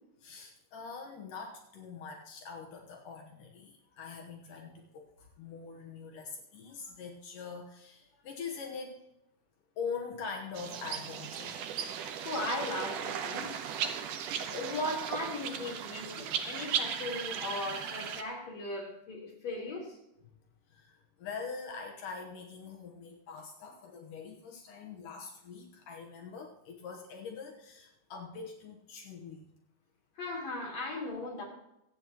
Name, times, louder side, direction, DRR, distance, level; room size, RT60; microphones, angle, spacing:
voice 1, 0.2-9.0 9.8-11.6 20.7-29.5, left 5 dB, 70° left, 1 dB, 2.7 m, -43 dB
sound 1, 10.5-18.2, right 8 dB, 75° right, 2.3 m, -37 dB
voice 2, 12.2-13.5 14.4-20.0 30.2-31.4, left 2 dB, 50° left, -3 dB, 4.8 m, -37 dB
24.5 x 8.6 x 3.0 m, 0.86 s
omnidirectional pair, 4.0 m